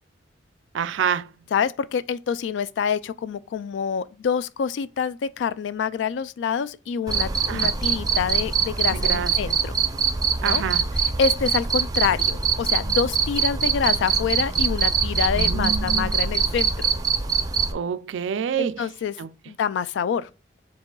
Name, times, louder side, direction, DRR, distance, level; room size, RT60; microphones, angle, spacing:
voice 1, 0.7-1.3 7.5-7.7 8.9-9.3 10.4-10.9 15.3-16.1 17.7-18.9 19.2-19.3, right 7 dB, 85° right, 0.4 m, -27 dB
voice 2, 1.5-9.7 10.4-10.6 11.2-16.9 18.6-19.1 19.5-20.3, left 7 dB, 75° left, 0.3 m, -26 dB
Cricket, 7.1-17.7, right 6 dB, 20° right, 0.5 m, -23 dB
4.8 x 3.8 x 2.3 m
head